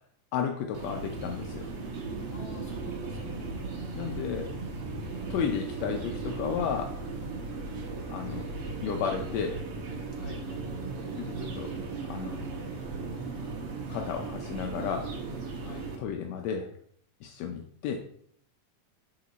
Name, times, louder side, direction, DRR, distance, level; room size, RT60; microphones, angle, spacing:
voice 1, 0.3-1.7 3.9-4.5 5.3-7.0 8.1-8.5 8.8-9.6 11.2-11.7 12.1-12.4 13.9-15.1 16.0-16.7 17.2-18.0, left 7 dB, 80° left, 3 dB, 1.6 m, -33 dB
sound 1, 0.7-16.0, right 3 dB, 60° right, 1.7 m, -37 dB
voice 2, 2.3-3.5 10.1-10.7 15.6-15.9, left 4 dB, 55° left, 0 dB, 2.0 m, -47 dB
6.9 x 5.0 x 4.1 m, 0.66 s
omnidirectional pair, 3.6 m